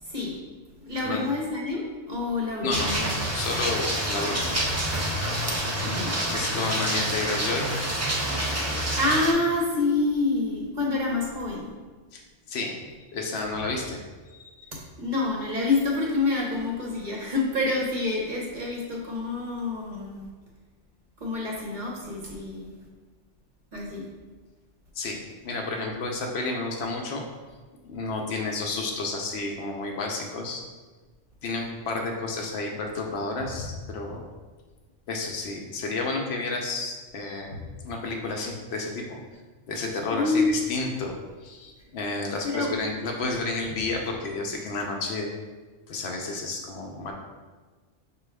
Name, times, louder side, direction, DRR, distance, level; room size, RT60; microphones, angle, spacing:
voice 1, 0.0-0.4 0.8-3.1 5.5-5.6 5.8-6.2 9.0-11.7 14.7-20.3 21.2-22.7 23.7-24.0 40.1-40.5 42.4-42.7, left 3 dB, 45° right, -3 dB, 0.7 m, -27 dB
voice 2, 2.6-3.0 3.3-4.6 6.3-7.7 12.1-12.2 12.5-14.7 24.9-25.2 25.4-27.2 27.8-30.6 31.4-34.3 35.1-39.2 39.7-45.3 45.9-47.1, left 3 dB, 70° left, 1 dB, 0.8 m, -31 dB
sound 1, 2.7-9.3, right 1 dB, 25° right, 0.3 m, -27 dB
5.6 x 2.3 x 3.3 m, 1.4 s
omnidirectional pair, 1.2 m